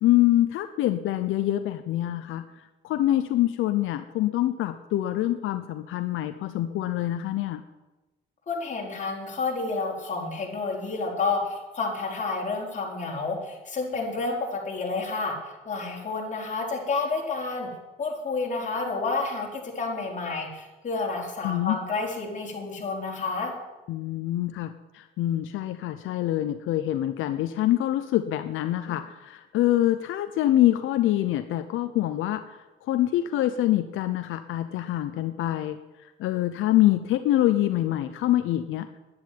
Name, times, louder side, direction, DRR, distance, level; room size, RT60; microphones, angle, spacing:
voice 1, 0.0-2.4 2.8-7.6 21.4-21.8 23.9-38.9, left 14 dB, 85° left, 10 dB, 0.7 m, -25 dB
voice 2, 8.5-17.7 18.0-23.5, left 3 dB, 40° left, -1 dB, 4.7 m, -30 dB
10.5 x 10.5 x 9.4 m, 1.1 s
cardioid pair, 90°, 20 cm